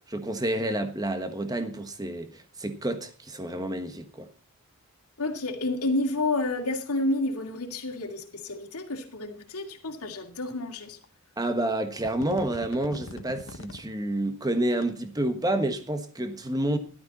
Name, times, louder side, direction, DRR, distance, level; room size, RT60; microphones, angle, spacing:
voice 1, 0.1-4.3 11.4-16.8, right 1 dB, 15° right, 1.3 m, -29 dB
voice 2, 5.2-11.0, left 2 dB, 90° left, 2.4 m, -30 dB
sound 1, 10.0-10.1 11.0-11.1 11.6-11.8 12.0-13.8 14.6-14.8, left 2 dB, 60° left, 1.1 m, -42 dB
14.0 x 12.0 x 4.2 m
head